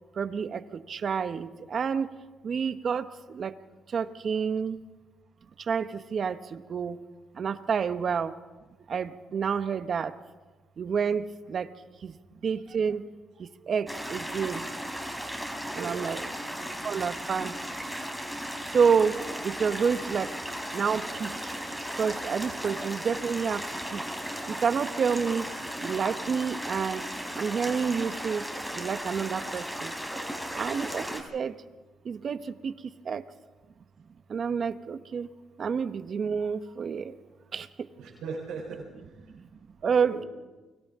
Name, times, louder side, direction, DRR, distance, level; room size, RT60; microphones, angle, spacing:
voice 1, 0.2-0.6 0.9-2.1 2.4-3.5 3.9-4.8 5.7-7.0 7.4-8.3 8.9-10.1 10.8-11.7 12.0-12.1 12.4-13.1 13.6-14.6 15.7-16.2 16.8-17.5 18.6-19.2 19.4-20.3 20.7-21.5 22.0-23.7 23.9-24.0 24.5-25.5 25.8-27.0 27.3-28.5 28.7-29.9 30.5-31.5 32.0-32.7 33.0-33.2 34.3-35.3 35.6-37.1 37.5-37.7 39.8-40.2, right 6 dB, 50° right, 11 dB, 1.1 m, -29 dB
sound 1, 13.9-31.2, equal, ahead, 4.0 m, -36 dB
voice 2, 15.8-16.4 38.0-39.3 40.0-40.3, right 5 dB, 90° right, -4 dB, 3.9 m, -39 dB
29.5 x 23.5 x 3.7 m, 1.2 s
cardioid pair, 90°, 0 cm